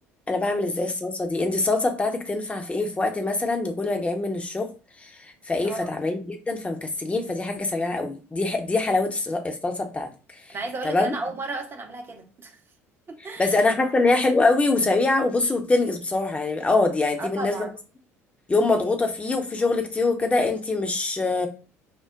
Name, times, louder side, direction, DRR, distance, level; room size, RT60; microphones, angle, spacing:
voice 1, 0.3-4.7 5.0-10.4 10.8-11.2 13.4-17.7 18.5-21.5, left 3 dB, 15° left, 0.7 m, -24 dB
voice 2, 5.6-6.0 10.5-12.6 13.1-13.6 17.2-17.7, right 2 dB, 30° right, 0.8 m, -34 dB
5.9 x 2.1 x 2.5 m
figure-of-eight pair, 60°, 8 cm